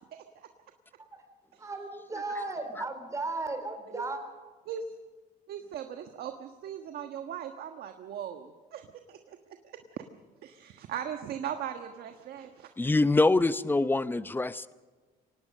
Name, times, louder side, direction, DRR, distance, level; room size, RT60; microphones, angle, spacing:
voice 1, 1.6-4.2, right 2 dB, 20° right, 7 dB, 3.8 m, -35 dB
voice 2, 5.5-8.8 9.1-9.4 9.9-10.0 10.4-12.7, right 9 dB, 65° right, 6 dB, 1.4 m, -39 dB
voice 3, 12.8-14.7, left 2 dB, 10° left, 14 dB, 0.7 m, -25 dB
24.5 x 18.5 x 6.5 m, 1.4 s
cardioid pair, 110°, 17 cm